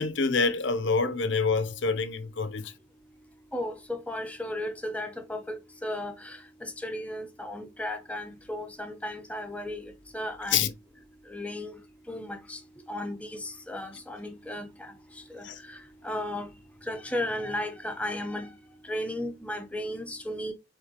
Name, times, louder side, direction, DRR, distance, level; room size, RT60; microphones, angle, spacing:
voice 1, 0.0-2.7 10.5-10.7 15.4-15.6, left 4 dB, 60° left, 0.7 m, -26 dB
voice 2, 3.5-10.7 11.3-11.7 12.1-12.6 12.9-14.9 15.3-15.8 16.0-16.5 16.9-18.5 18.9-20.5, left 1 dB, 5° left, 0.7 m, -35 dB
4.9 x 3.7 x 2.9 m
head